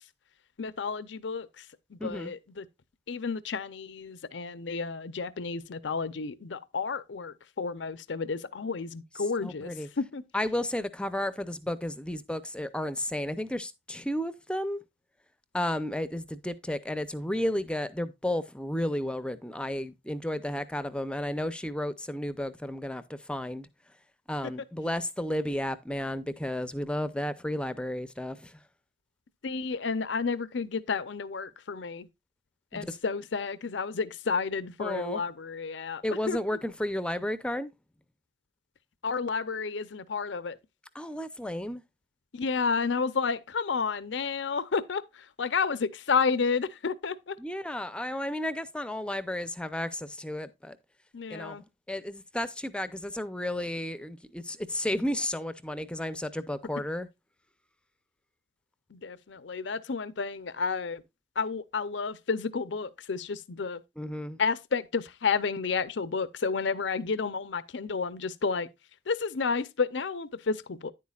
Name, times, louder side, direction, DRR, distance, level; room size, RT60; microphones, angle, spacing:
voice 1, 0.6-1.5 1.9-2.6 3.1-9.7 10.0-10.2 29.4-32.1 32.7-36.4 39.0-40.6 42.3-45.0 45.4-47.4 51.1-51.6 58.9-61.0 61.4-63.8 64.4-68.7 69.1-70.9, left 5 dB, 70° left, 0.6 m, -31 dB
voice 2, 2.0-2.3 9.4-9.9 10.3-14.8 15.5-23.7 24.3-28.6 32.7-33.0 34.8-35.2 36.0-37.7 40.9-41.8 47.4-50.8 51.3-57.1 64.0-64.4, left 1 dB, 5° left, 0.5 m, -33 dB
10.0 x 8.4 x 2.4 m
head